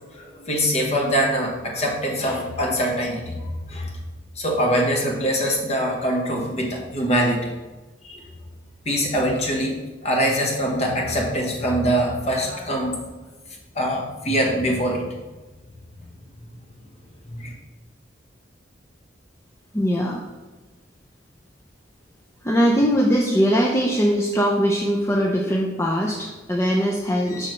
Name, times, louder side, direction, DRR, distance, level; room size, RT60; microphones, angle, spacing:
voice 1, 0.1-3.9 4.3-7.5 8.0-8.2 8.8-9.8 10.0-13.0 13.7-15.1 17.3-17.5, equal, 35° left, 0 dB, 1.2 m, -23 dB
voice 2, 19.7-20.2 22.4-27.5, equal, 15° left, -2 dB, 0.5 m, -21 dB
6.4 x 6.3 x 3.2 m, 1.2 s
head